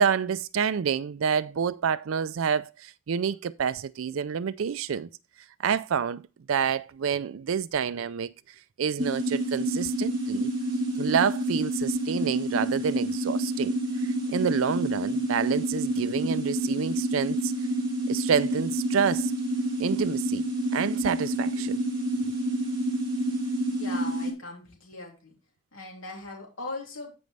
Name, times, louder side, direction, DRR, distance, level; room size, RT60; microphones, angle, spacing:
voice 1, 0.0-5.1 5.6-6.2 6.5-8.3 8.8-10.5 11.0-13.8 14.0-17.5 18.1-19.3 19.8-20.4 20.7-21.8 22.2-22.3, right 7 dB, 90° right, 0.4 m, -28 dB
sound 1, 9.0-24.3, right 1 dB, 25° right, 2.8 m, -28 dB
voice 2, 23.7-25.3 25.7-27.1, left 2 dB, 90° left, 3.2 m, -39 dB
13.5 x 5.2 x 3.3 m
head